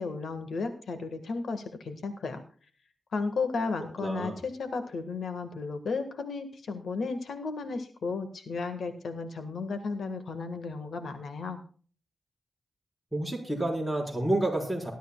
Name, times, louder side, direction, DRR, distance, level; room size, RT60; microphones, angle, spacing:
voice 1, 0.0-2.4 3.1-11.6, left 4 dB, 80° left, 8 dB, 1.6 m, -34 dB
voice 2, 4.0-4.3 13.1-14.9, right 1 dB, ahead, 1 dB, 4.5 m, -29 dB
19.5 x 12.5 x 2.3 m, 0.42 s
wide cardioid pair, 135°, 0 cm